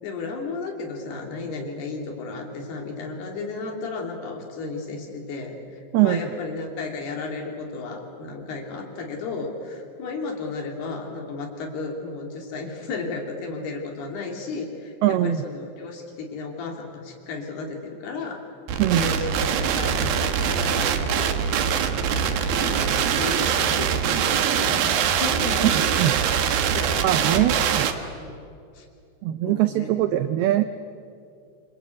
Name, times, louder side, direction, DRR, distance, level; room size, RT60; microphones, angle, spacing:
voice 1, 0.0-18.4 18.9-25.9 26.7-27.6 28.2-28.4 28.7-28.9 29.4-30.0, left 3 dB, 60° left, 2 dB, 4.7 m, -34 dB
voice 2, 15.0-15.4 18.8-19.0 25.6-26.1 27.0-27.9 29.2-30.6, right 13 dB, 80° right, 10 dB, 2.2 m, -21 dB
sound 1, 18.7-27.9, right 8 dB, 65° right, 2.6 m, -23 dB
28.0 x 25.0 x 8.4 m, 2.4 s
omnidirectional pair, 5.4 m